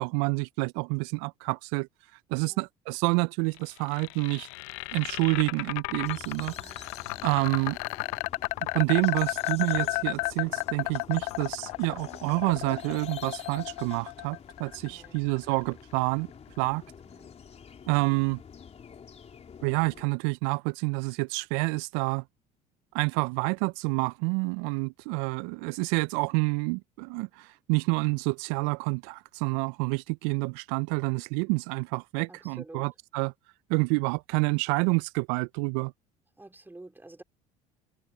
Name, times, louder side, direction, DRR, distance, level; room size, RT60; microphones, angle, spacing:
voice 1, 0.0-1.9 2.3-4.5 4.9-6.5 7.2-7.8 8.7-16.3 16.6-16.8 17.9-18.4 19.6-22.2 22.9-33.3 33.7-35.9, right 31 dB, 65° right, 0.4 m, -28 dB
sound 1, 3.6-15.6, left 29 dB, 70° left, 0.6 m, -33 dB
sound 2, 6.0-20.0, left 7 dB, 35° left, 3.5 m, -49 dB
voice 2, 6.3-6.9 7.1-7.4 14.8-15.2 17.0-17.4 32.3-32.9 36.4-37.2, right 2 dB, 10° right, 3.4 m, -50 dB
hypercardioid pair, 70°, 19 cm